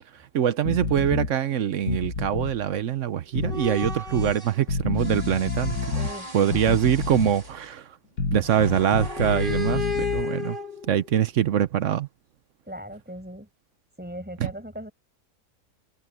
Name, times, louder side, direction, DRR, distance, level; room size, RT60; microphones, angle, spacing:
voice 1, 0.3-5.8 6.3-7.8 8.3-10.6 10.9-12.1, right 10 dB, 60° right, 0.9 m, -24 dB
sound 1, 0.6-1.3 1.8-2.6 3.4-4.4 4.7-6.1 6.5-7.5 8.2-10.2, left 4 dB, 70° left, 2.3 m, -29 dB
sound 2, 3.4-4.6 5.0-7.5 8.5-11.1, left 4 dB, 30° right, 3.0 m, -34 dB
voice 2, 5.9-6.6 12.7-13.5 14.0-14.9, equal, 5° right, 6.3 m, -38 dB
omnidirectional pair, 1.7 m